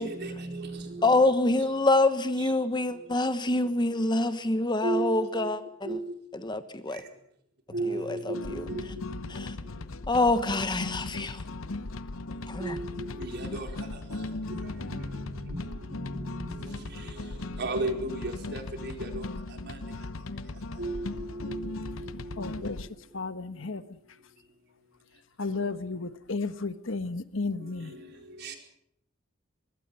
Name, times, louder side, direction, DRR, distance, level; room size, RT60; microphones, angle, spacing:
voice 1, 0.0-1.7 2.4-2.5 2.9-3.0 4.8-5.5 5.8-6.1 6.9-7.0 7.7-9.4 12.6-19.3 19.6-19.8 20.8-22.7 27.6-28.6, right 2 dB, 55° right, 3 dB, 4.6 m, -36 dB
voice 2, 1.0-6.0 6.4-7.0 7.9-8.6 9.3-9.5 10.1-11.4 12.5-12.8, left 2 dB, 20° left, 10 dB, 1.2 m, -26 dB
sound 1, 8.3-22.9, left 2 dB, 90° left, 0.9 m, -38 dB
voice 3, 22.4-22.9 23.1-23.8 25.4-27.9, left 3 dB, 70° left, 11 dB, 1.2 m, -33 dB
24.5 x 22.0 x 5.6 m, 0.74 s
head